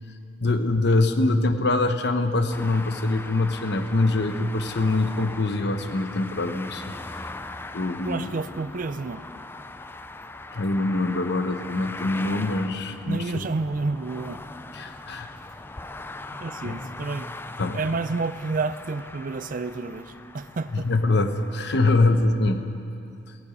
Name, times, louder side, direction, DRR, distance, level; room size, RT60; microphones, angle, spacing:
voice 1, 0.4-6.9 7.7-8.3 10.5-13.2 14.7-15.3 16.6-16.7 17.6-17.8 20.7-22.6, left 2 dB, 65° left, 8 dB, 0.9 m, -24 dB
sound 1, 2.5-22.0, left 2 dB, 10° left, 0.4 m, -40 dB
voice 2, 8.0-9.2 13.1-14.5 16.4-17.3 17.7-20.9, right 3 dB, 45° right, 13 dB, 0.5 m, -30 dB
16.5 x 8.7 x 8.4 m, 2.7 s
head